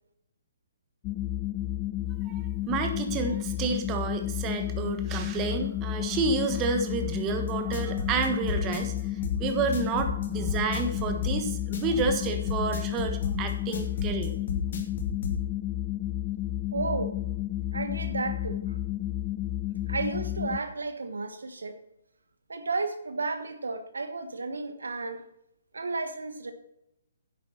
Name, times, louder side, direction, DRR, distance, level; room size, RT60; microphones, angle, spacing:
sound 1, 1.0-20.6, left 15 dB, 25° left, 0.4 m, -32 dB
voice 1, 2.3-14.3, right 4 dB, 25° right, 7 dB, 1.3 m, -30 dB
sound 2, 7.5-15.4, left 4 dB, 55° left, 2.4 m, -32 dB
voice 2, 16.7-17.1 17.7-18.8 19.9-21.8 22.5-25.2 25.7-26.5, right 3 dB, 80° right, 9 dB, 1.2 m, -33 dB
10.5 x 8.2 x 4.4 m, 0.81 s
figure-of-eight pair, 135°, 0 cm